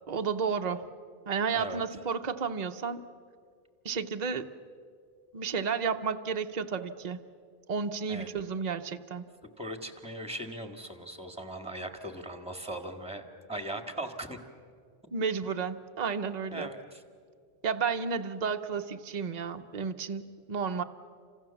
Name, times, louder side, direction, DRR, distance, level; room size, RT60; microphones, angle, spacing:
voice 1, 0.1-0.8 1.3-3.0 3.8-4.5 5.3-7.2 7.7-9.3 15.1-16.7 17.6-20.8, right 6 dB, 45° right, 7 dB, 0.9 m, -32 dB
voice 2, 9.4-14.4 16.5-17.0, right 1 dB, 5° right, 6 dB, 1.9 m, -39 dB
29.5 x 26.5 x 7.2 m, 2.2 s
omnidirectional pair, 1.1 m